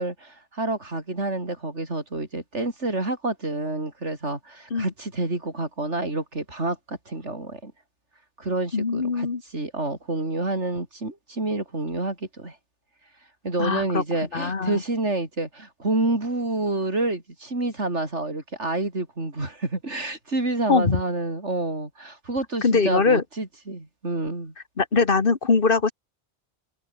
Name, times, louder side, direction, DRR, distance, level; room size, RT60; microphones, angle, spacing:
voice 1, 0.0-7.7 8.4-9.3 9.5-12.5 13.4-24.5, right 2 dB, 90° right, 5.1 m, -28 dB
voice 2, 8.7-9.4 13.6-14.0 14.3-14.8 20.7-21.0 22.6-23.2 24.8-25.9, left 4 dB, 55° left, 1.7 m, -21 dB
omnidirectional pair, 1.2 m